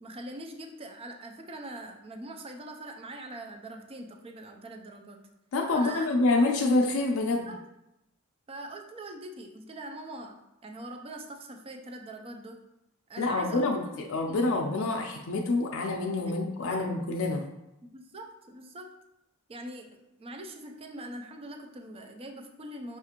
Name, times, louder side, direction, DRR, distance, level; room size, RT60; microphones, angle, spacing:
voice 1, 0.0-5.2 5.7-6.4 7.5-7.6 8.5-10.3 10.6-12.6 13.1-13.9 14.3-14.5 16.3-16.8 17.9-18.9 19.5-23.0, right 1 dB, 25° right, 4 dB, 0.4 m, -43 dB
voice 2, 5.5-7.5 13.2-17.4, left 2 dB, 70° left, 1 dB, 0.4 m, -27 dB
5.7 x 2.5 x 2.8 m, 0.88 s
head